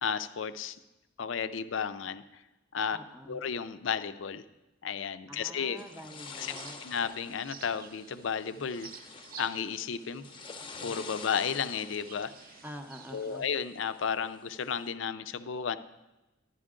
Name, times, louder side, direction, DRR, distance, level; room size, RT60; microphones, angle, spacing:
voice 1, 0.0-0.8 1.2-2.4 2.7-3.0 3.3-4.4 4.8-5.8 6.4-6.5 6.8-9.0 9.4-10.3 10.8-12.3 13.1-15.8, left 7 dB, 70° left, 11 dB, 0.5 m, -33 dB
voice 2, 2.9-3.4 5.3-6.8 12.6-13.4, equal, 10° right, 5 dB, 0.6 m, -46 dB
sound 1, 5.8-14.9, left 4 dB, 25° left, 0.7 m, -48 dB
sound 2, 6.1-13.4, right 7 dB, 50° right, 0.5 m, -52 dB
11.0 x 10.5 x 3.7 m, 1.0 s
head